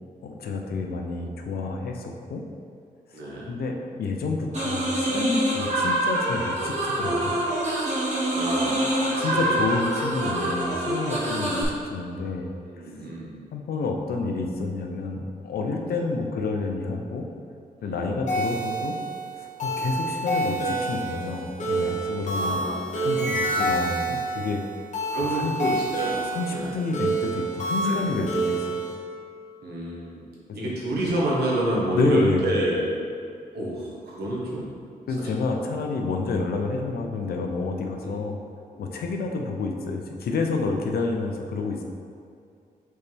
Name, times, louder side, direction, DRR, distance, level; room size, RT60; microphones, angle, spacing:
voice 1, 0.2-2.4 3.5-7.5 9.2-12.5 12.8-12.9 13.5-17.2 17.8-18.9 19.4-22.6 23.0-24.6 25.3-25.5 26.3-28.8 30.6-30.7 31.9-32.5 35.1-38.4 38.8-41.8, left 3 dB, 75° left, 2 dB, 0.7 m, -29 dB
voice 2, 3.1-3.5 8.3-9.6 11.1-11.4 12.7-13.4 15.8-16.0 17.8-18.2 20.1-20.3 22.3-23.1 23.5-23.7 25.1-26.8 27.8-28.1 29.6-30.2 30.5-32.9 33.5-34.8 35.2-35.3 38.0-38.3 38.7-38.9, right 1 dB, 90° right, -4 dB, 1.4 m, -29 dB
sound 1, 4.5-11.6, right 1 dB, 45° right, 1.4 m, -26 dB
sound 2, 18.3-28.9, right 2 dB, 50° left, 1.5 m, -28 dB
6.3 x 4.2 x 3.4 m, 2.4 s
cardioid pair, 90°, 16 cm